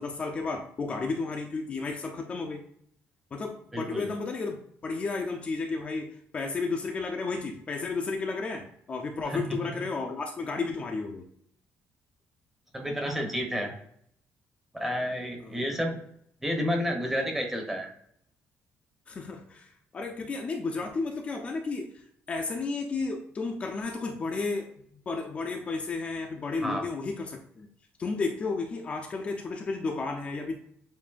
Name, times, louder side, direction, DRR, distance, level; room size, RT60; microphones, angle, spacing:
voice 1, 0.0-2.6 3.3-4.6 4.8-11.2 15.4-15.6 19.1-24.7 25.1-27.7 28.0-30.5, left 3 dB, 30° left, 2 dB, 0.5 m, -33 dB
voice 2, 3.7-4.1 9.3-9.6 12.7-13.7 14.7-16.0 16.4-17.9 26.6-26.9, equal, 5° right, 2 dB, 0.8 m, -30 dB
7.2 x 2.6 x 2.4 m, 0.70 s
cardioid pair, 165°, 4 cm